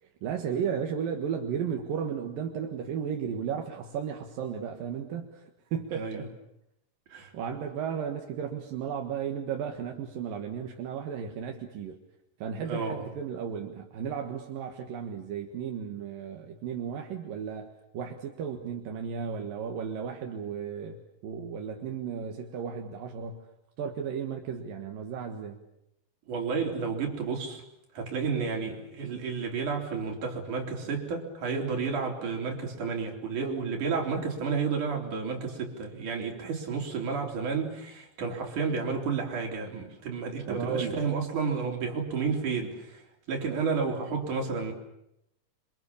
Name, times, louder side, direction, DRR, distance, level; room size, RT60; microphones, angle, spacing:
voice 1, 0.0-6.3 7.3-12.0 12.4-23.5 23.8-25.6 40.5-41.0, right 7 dB, 85° right, 3.4 m, -34 dB
voice 2, 5.9-6.3 7.1-7.3 12.7-13.1 26.3-27.6 27.9-44.7, right 5 dB, 65° right, 5.2 m, -31 dB
27.0 x 26.0 x 7.1 m
omnidirectional pair, 3.8 m